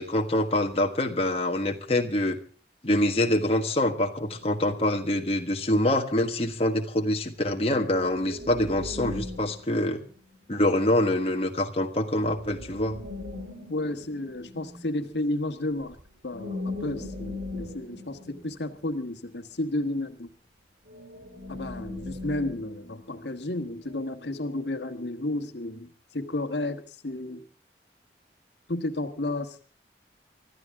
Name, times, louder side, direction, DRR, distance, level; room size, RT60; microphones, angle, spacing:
voice 1, 0.0-2.4 2.8-10.0 10.5-13.0, left 1 dB, 35° left, 3 dB, 1.5 m, -25 dB
sound 1, 4.2-5.4 7.6-10.6 12.1-15.1 15.8-16.0 16.3-19.3 20.9-23.4 23.8-24.0, left 2 dB, 70° right, 2.3 m, -39 dB
voice 2, 13.7-16.0 16.2-20.3 21.5-27.4 28.7-29.6, left 1 dB, 80° left, 8 dB, 1.4 m, -32 dB
25.0 x 13.0 x 3.6 m, 0.38 s
head